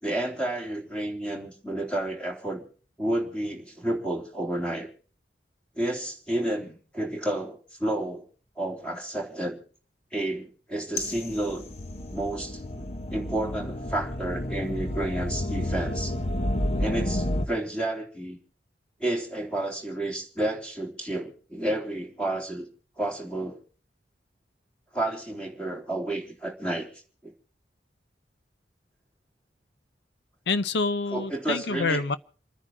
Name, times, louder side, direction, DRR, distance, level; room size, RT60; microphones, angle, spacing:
voice 1, 0.0-2.6 3.0-4.9 5.8-8.3 8.6-9.6 10.1-11.6 12.1-16.1 16.8-18.4 19.0-22.7 23.0-23.6 24.9-26.9 27.2-27.3 31.1-32.0, right 1 dB, 5° left, 3.7 m, -31 dB
sound 1, 11.0-17.5, left 1 dB, 40° left, 1.0 m, -30 dB
voice 2, 30.5-32.2, left 4 dB, 80° left, 0.7 m, -27 dB
28.5 x 10.0 x 4.4 m
head